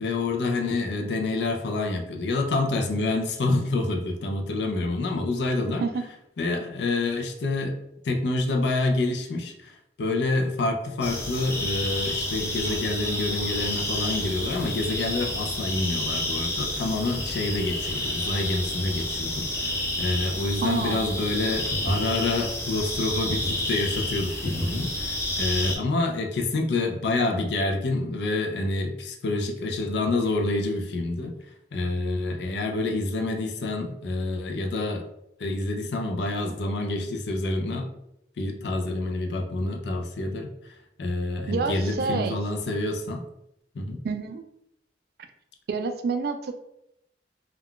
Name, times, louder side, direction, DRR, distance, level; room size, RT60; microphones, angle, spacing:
voice 1, 0.0-5.8 6.4-7.7 8.0-19.5 20.0-31.3 31.7-35.0 35.4-37.9 38.4-43.2 43.7-44.0, left 2 dB, 70° left, 3 dB, 0.4 m, -27 dB
sound 1, 11.0-25.8, left 1 dB, 15° left, 0.5 m, -30 dB
voice 2, 20.6-21.1 41.5-42.4 44.0-44.4 45.7-46.5, right 4 dB, 55° right, 8 dB, 0.3 m, -28 dB
2.3 x 2.2 x 3.6 m, 0.79 s
head